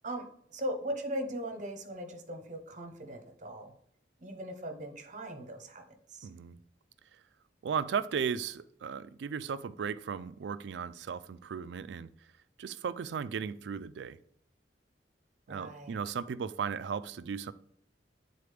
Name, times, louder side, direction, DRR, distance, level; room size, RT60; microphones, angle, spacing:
voice 1, 0.0-3.7 4.2-5.8 6.1-6.3 15.5-16.0, right 1 dB, 45° right, 0.9 m, -39 dB
voice 2, 6.2-6.6 7.6-12.1 12.6-14.2 15.5-17.5, right 6 dB, 75° right, 0.3 m, -36 dB
8.3 x 4.0 x 3.3 m
head